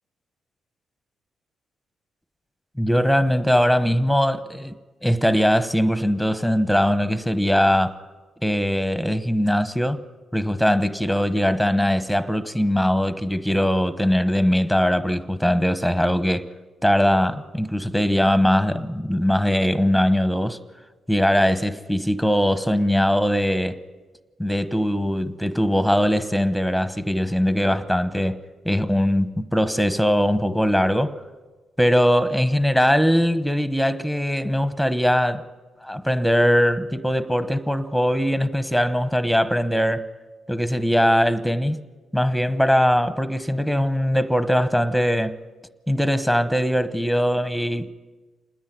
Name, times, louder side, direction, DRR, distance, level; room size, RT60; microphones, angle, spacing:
voice 1, 2.8-4.7 5.0-8.0 8.4-10.0 10.3-16.5 16.8-20.6 21.1-23.8 24.4-28.4 28.6-31.2 31.8-35.4 35.8-40.1 40.5-41.8 42.1-45.4 45.9-47.9, equal, ahead, 1.0 m, -21 dB
27.0 x 10.0 x 9.4 m
cardioid pair, 75°, 0 cm